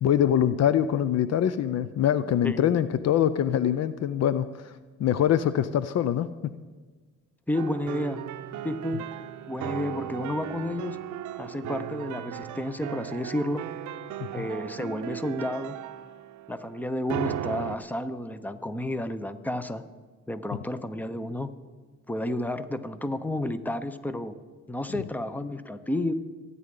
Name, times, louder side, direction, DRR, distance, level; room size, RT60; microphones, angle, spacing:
voice 1, 0.0-4.7 5.0-6.3 14.3-14.5, left 10 dB, 60° left, 14 dB, 0.5 m, -24 dB
voice 2, 7.5-8.2 8.6-9.0 9.5-11.0 11.4-13.6 14.3-15.8 16.5-19.8 20.3-21.5 22.1-24.4 24.7-26.1, left 1 dB, 5° left, 11 dB, 0.7 m, -31 dB
sound 1, 7.5-17.8, right 11 dB, 75° right, 0.6 m, -36 dB
26.0 x 9.7 x 3.8 m, 1.4 s
cardioid pair, 90°, 30 cm